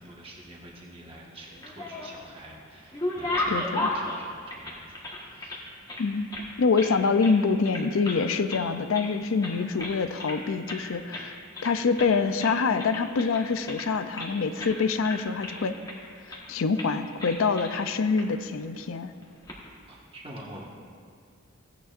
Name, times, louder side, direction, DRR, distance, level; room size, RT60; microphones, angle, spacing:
voice 1, 0.0-5.0 5.3-5.6 19.9-20.7, right 1 dB, 25° right, -3 dB, 1.4 m, -46 dB
sound 1, 1.5-2.3 2.7-5.6 5.9-6.9 7.2-7.4 7.6-8.2 8.5-9.1 9.4-10.4 10.7-10.8 11.1-11.3 11.5-12.1 12.4-14.3 14.6-14.8 15.0-16.0 16.3-16.5 16.8-16.9 17.2-17.8 18.2-18.3 19.2-19.6, left 1 dB, 20° left, 1.4 m, -34 dB
voice 2, 3.5-3.9 6.0-6.3 6.6-11.4 11.6-15.8 16.5-19.1, left 4 dB, 70° left, 11 dB, 0.5 m, -25 dB
16.0 x 9.0 x 2.5 m, 2.2 s
head